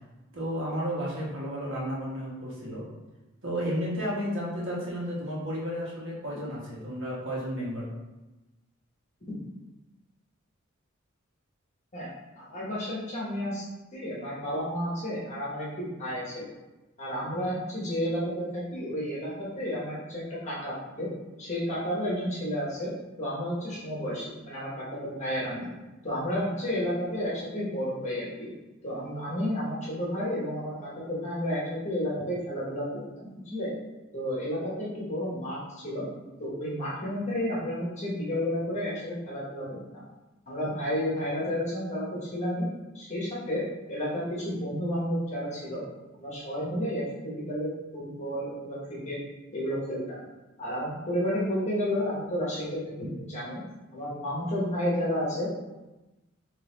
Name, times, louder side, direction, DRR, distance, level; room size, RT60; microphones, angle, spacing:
voice 1, 0.3-2.8 3.4-7.9, equal, 65° right, -5 dB, 1.5 m, -32 dB
voice 2, 12.4-13.6 13.9-16.4 17.0-21.1 21.4-22.9 23.2-25.7 26.0-28.5 28.8-33.7 34.1-36.1 36.4-40.0 40.5-42.7 42.9-43.6 43.9-45.8 46.2-49.2 49.5-50.2 50.6-53.6 53.9-55.5, equal, 35° left, -6 dB, 1.2 m, -31 dB
4.1 x 3.0 x 3.9 m, 1.1 s
head